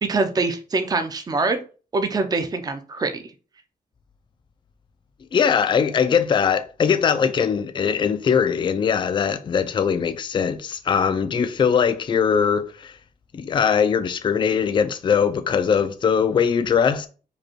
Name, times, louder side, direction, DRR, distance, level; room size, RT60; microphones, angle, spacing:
voice 1, 0.0-1.6 1.9-3.1, right 3 dB, 25° right, 0.5 m, -24 dB
voice 2, 5.3-12.9 13.3-17.1, left 7 dB, 30° left, 0.4 m, -21 dB
5.1 x 2.3 x 4.4 m
wide cardioid pair, 140°, 16 cm